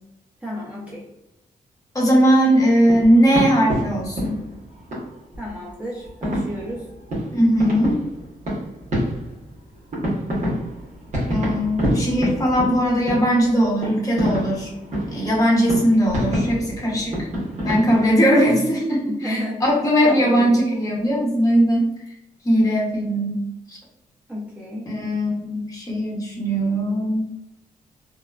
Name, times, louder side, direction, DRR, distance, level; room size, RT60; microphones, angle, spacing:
voice 1, 0.4-1.1 5.4-6.9 19.2-19.6 20.0-20.5 24.3-24.9, equal, 10° right, -6 dB, 0.5 m, -32 dB
voice 2, 1.9-4.4 7.3-7.9 11.3-14.7 15.1-17.3 17.6-21.9 22.4-23.4 23.7-23.8 24.9-27.2, equal, 25° left, -3 dB, 0.9 m, -19 dB
sound 1, 2.5-18.1, equal, 55° right, 1.1 m, -28 dB
2.9 x 2.2 x 2.4 m, 0.89 s
wide cardioid pair, 125°, 15 cm